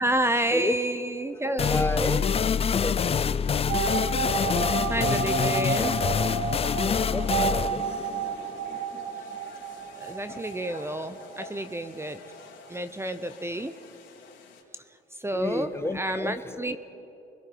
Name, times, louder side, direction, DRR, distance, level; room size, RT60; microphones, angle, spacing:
voice 1, 0.0-2.2 4.9-6.0 9.9-12.2 12.7-13.8 15.2-15.7 15.9-16.8, right 1 dB, 10° right, 11 dB, 0.8 m, -29 dB
sound 1, 1.6-9.0, left 7 dB, 30° left, 0.4 m, -26 dB
voice 2, 1.7-3.8 4.5-5.2 6.5-8.0 8.7-9.1 9.3-9.5 10.3-10.4 15.3-16.8, left 2 dB, 10° left, 10 dB, 1.1 m, -34 dB
sound 2, 3.4-14.6, left 6 dB, 65° left, 3.6 m, -49 dB
sound 3, 3.7-12.2 12.5-12.6 12.7-12.8, right 7 dB, 60° right, 1.3 m, -31 dB
27.5 x 21.5 x 4.7 m, 2.9 s
cardioid pair, 90°, 20 cm